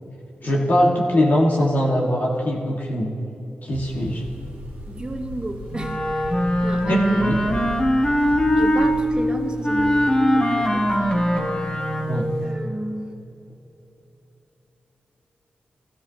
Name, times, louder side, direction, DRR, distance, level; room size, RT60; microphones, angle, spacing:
voice 1, 0.4-3.1 3.6-4.2 6.9-7.4 12.1-12.3, equal, 55° left, -2 dB, 1.5 m, -21 dB
sound 1, 3.7-12.5, equal, 80° right, 1.5 m, -36 dB
voice 2, 4.9-7.6 8.2-8.3 8.5-11.3 12.3-13.1, right 1 dB, 25° right, 3 dB, 1.1 m, -32 dB
Wind instrument woodwind instrument, 5.7-9.0 9.6-12.4, equal, 30° left, 1.5 m, -21 dB
15.0 x 13.5 x 2.8 m, 2.9 s
cardioid pair, 75°, 4 cm